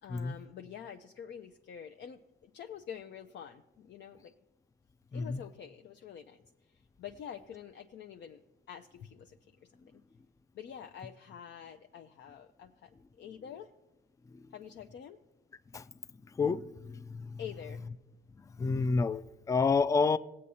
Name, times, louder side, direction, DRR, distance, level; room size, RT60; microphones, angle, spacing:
voice 1, 0.0-4.3 5.1-8.4 8.7-9.9 10.5-13.7 14.5-15.2 17.4-17.8, left 8 dB, 60° left, 0.6 m, -47 dB
voice 2, 5.1-5.4 14.3-14.4 15.7-15.8 16.4-17.4 18.6-20.2, left 4 dB, 15° left, 0.3 m, -29 dB
17.5 x 8.5 x 2.8 m
cardioid pair, 90°, 20 cm